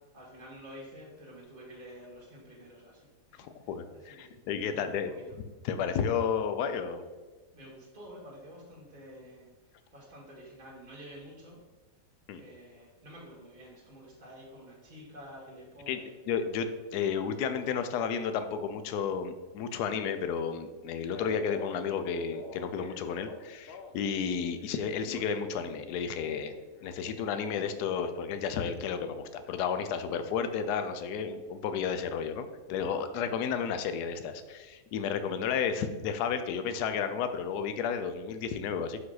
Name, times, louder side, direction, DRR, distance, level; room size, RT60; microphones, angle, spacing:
voice 1, 0.1-4.4 4.7-5.4 7.5-11.6 12.3-16.3, equal, 30° right, -4 dB, 1.8 m, -50 dB
voice 2, 3.4-5.1 5.6-7.1 12.3-12.4 15.9-16.0 16.3-26.5 26.8-39.0, left 6 dB, 80° left, 10 dB, 1.1 m, -32 dB
Male speech man speaking, 21.1-24.4 24.6-28.0, left 3 dB, 60° left, 0.6 m, -47 dB
5.8 x 5.0 x 3.9 m, 1.3 s
omnidirectional pair, 1.7 m